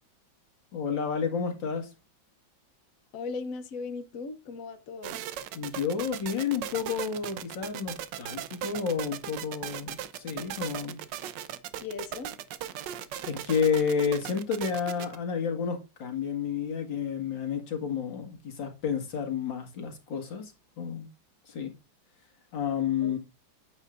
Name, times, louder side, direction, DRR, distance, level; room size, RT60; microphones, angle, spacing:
voice 1, 0.7-1.9 5.5-11.0 13.3-21.1 21.5-21.7 22.5-23.2, left 6 dB, 75° left, 2.5 m, -30 dB
voice 2, 3.1-5.2 11.8-12.3 23.0-23.2, left 4 dB, 55° left, 1.1 m, -38 dB
sound 1, 5.0-15.2, right 11 dB, 75° right, 1.3 m, -37 dB
9.0 x 8.3 x 2.5 m
omnidirectional pair, 2.0 m